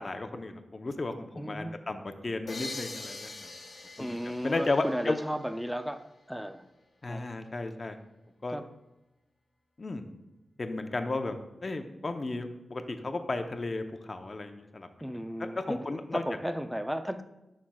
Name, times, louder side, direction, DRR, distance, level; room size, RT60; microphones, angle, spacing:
voice 1, 0.0-3.5 4.0-5.2 7.0-8.0 8.4-8.6 9.8-10.0 10.6-11.4 11.6-14.9 15.6-16.2, left 2 dB, 40° left, 6 dB, 0.7 m, -34 dB
voice 2, 1.4-1.7 4.0-6.0 6.3-6.6 7.1-7.2 8.5-8.6 15.0-15.8 16.1-17.2, equal, ahead, 9 dB, 0.5 m, -34 dB
sound 1, 2.5-6.0, left 3 dB, 65° left, 1.3 m, -43 dB
11.5 x 6.2 x 2.3 m, 0.96 s
wide cardioid pair, 75°, 0 cm